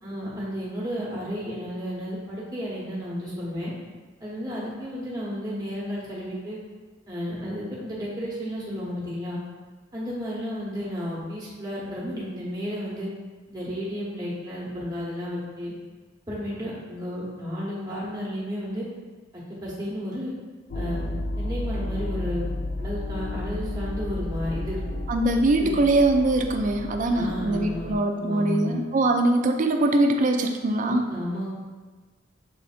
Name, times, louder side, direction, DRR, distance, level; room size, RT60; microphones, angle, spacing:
voice 1, 0.0-3.7 4.2-6.6 7.1-9.4 9.9-13.1 13.5-15.7 16.3-18.8 19.6-20.3 20.7-21.1 21.4-22.5 22.8-24.8 25.6-25.8 27.1-27.9 28.1-28.7 30.8-31.5, equal, 20° right, -7 dB, 1.1 m, -32 dB
sound 1, 20.7-28.0, left 1 dB, 50° left, 0.4 m, -32 dB
voice 2, 25.1-31.1, right 2 dB, 40° right, 5 dB, 0.3 m, -22 dB
6.7 x 2.6 x 2.5 m, 1.3 s
head